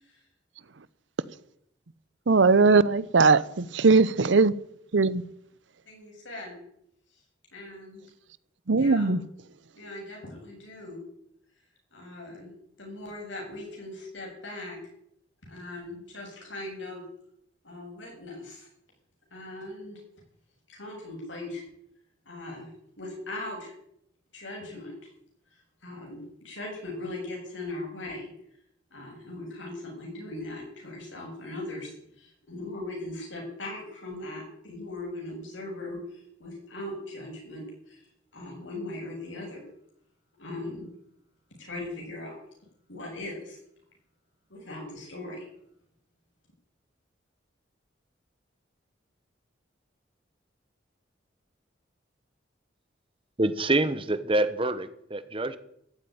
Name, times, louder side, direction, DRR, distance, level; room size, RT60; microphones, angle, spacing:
voice 1, 2.3-4.5 4.9-5.2 8.7-9.2, right 4 dB, 80° right, 0.7 m, -20 dB
voice 2, 5.9-6.5 7.5-8.0 8.8-9.1 9.8-11.0 11.9-12.5 12.8-14.8 15.5-17.0 17.6-18.7 19.3-20.0 20.7-21.6 22.3-22.7 23.0-23.7 24.3-24.9 25.8-26.2 26.4-28.3 28.9-38.0 38.3-39.6 40.4-40.9 41.6-42.3 42.9-43.6 44.5-45.4, left 2 dB, 90° left, 7.8 m, -39 dB
voice 3, 53.4-55.6, right 2 dB, 30° right, 1.0 m, -26 dB
14.5 x 8.6 x 9.5 m
head